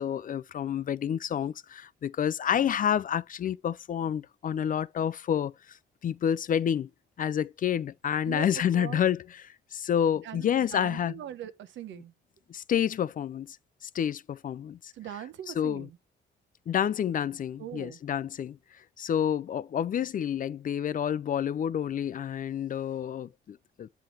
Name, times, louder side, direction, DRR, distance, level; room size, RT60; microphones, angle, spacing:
voice 1, 0.0-5.8 6.0-6.9 7.2-11.1 11.9-12.0 12.5-13.6 13.8-14.9 15.5-15.9 16.7-18.6 19.0-23.9, left 9 dB, 45° left, 0.4 m, -29 dB
voice 2, 8.7-9.1 10.2-12.1 14.9-16.0 17.6-18.0, right 11 dB, 70° right, 1.0 m, -41 dB
7.3 x 5.7 x 3.1 m
cardioid pair, 90°, 20 cm